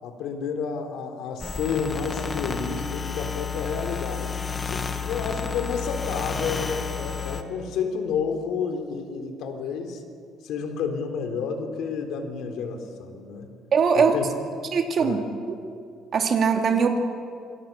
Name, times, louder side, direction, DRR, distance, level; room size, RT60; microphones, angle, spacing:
voice 1, 0.0-4.4 4.7-10.0 10.4-13.5 14.0-14.3 15.0-15.2, left 6 dB, 70° left, 4 dB, 3.6 m, -30 dB
sound 1, 1.4-7.4, left 6 dB, 20° left, 1.6 m, -31 dB
voice 2, 13.7-14.1 14.7-15.2 15.5-15.6 16.1-17.0, right 6 dB, 40° right, 3 dB, 2.6 m, -21 dB
27.5 x 24.5 x 7.4 m, 2.4 s
cardioid pair, 160°, 0 cm